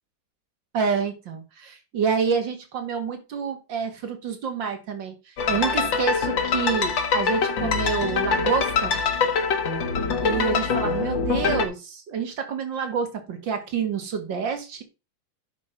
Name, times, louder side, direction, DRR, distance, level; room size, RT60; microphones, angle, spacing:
voice 1, 0.7-9.0 10.2-14.8, right 6 dB, 85° right, 2.5 m, -28 dB
sound 1, 5.4-11.7, left 5 dB, 90° left, 2.2 m, -24 dB
10.0 x 4.4 x 5.3 m
omnidirectional pair, 2.0 m